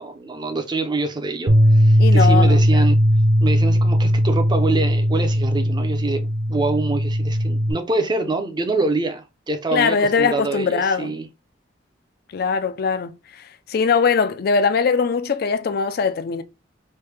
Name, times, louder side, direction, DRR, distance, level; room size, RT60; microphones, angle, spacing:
voice 1, 0.0-3.0 3.4-6.2 6.5-11.3, right 3 dB, 25° right, 0.5 m, -25 dB
Bass guitar, 1.5-7.7, equal, 80° right, 0.6 m, -17 dB
voice 2, 2.0-2.9 9.7-11.1 12.3-16.4, left 5 dB, 55° left, 0.4 m, -21 dB
3.2 x 2.2 x 3.2 m
head